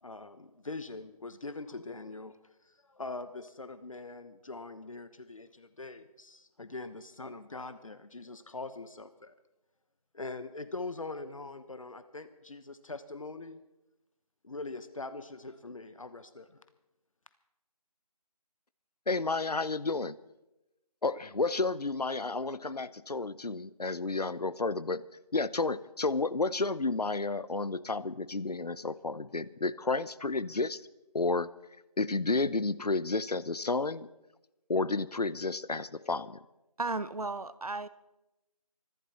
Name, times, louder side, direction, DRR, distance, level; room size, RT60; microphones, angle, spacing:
voice 1, 0.0-2.4 2.6-9.3 10.1-13.6 14.4-16.6, left 3 dB, 55° left, 12 dB, 1.1 m, -42 dB
voice 2, 19.1-20.2 21.0-25.0 25.3-30.8 31.1-31.5 32.0-34.1 34.7-36.4, left 3 dB, 80° left, 17 dB, 0.9 m, -31 dB
voice 3, 36.8-37.9, right 3 dB, 70° right, 14 dB, 1.1 m, -34 dB
25.0 x 12.0 x 4.3 m, 0.95 s
figure-of-eight pair, 165°, 20 cm